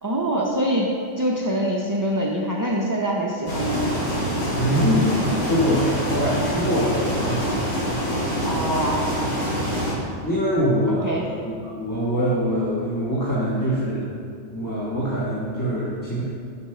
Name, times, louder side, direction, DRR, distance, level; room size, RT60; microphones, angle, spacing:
voice 1, 0.0-4.0 8.4-9.1 11.0-11.3, right 1 dB, 25° right, -2 dB, 0.5 m, -24 dB
sound 1, 3.5-9.9, equal, 80° left, 2.8 m, -25 dB
voice 2, 4.5-7.4 10.2-14.0 14.5-16.2, equal, 15° left, -9 dB, 1.3 m, -23 dB
7.1 x 6.2 x 5.7 m, 2.3 s
omnidirectional pair, 1.2 m